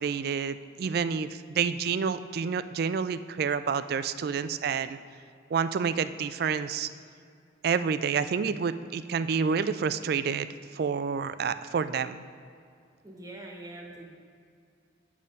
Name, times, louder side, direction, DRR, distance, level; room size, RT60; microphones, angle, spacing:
voice 1, 0.0-5.0 5.5-6.9 7.6-10.5 10.7-12.2, right 6 dB, 55° right, 13 dB, 0.3 m, -29 dB
voice 2, 13.0-14.1, right 1 dB, 20° right, 0 dB, 1.1 m, -43 dB
7.5 x 7.1 x 5.3 m, 2.4 s
head